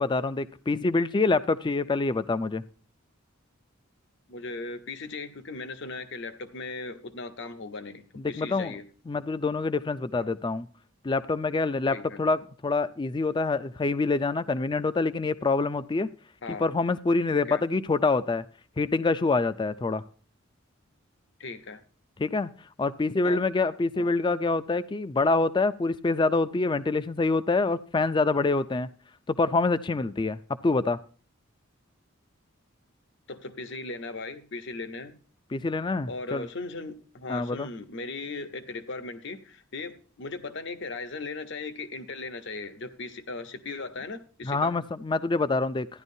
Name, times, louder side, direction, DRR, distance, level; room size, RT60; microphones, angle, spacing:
voice 1, 0.0-2.6 8.3-8.8 9.1-10.7 11.0-16.1 16.5-18.4 18.8-20.0 22.2-22.5 22.8-28.9 29.3-31.0 35.5-36.5 37.3-37.7 44.4-45.9, left 3 dB, 20° left, 14 dB, 0.4 m, -26 dB
voice 2, 4.3-8.9 10.1-10.3 11.9-12.2 16.4-16.7 17.5-17.6 21.4-21.8 23.2-23.4 23.9-24.1 33.3-35.1 36.0-44.8, left 3 dB, 60° left, 9 dB, 0.8 m, -38 dB
14.0 x 10.5 x 2.7 m, 0.40 s
head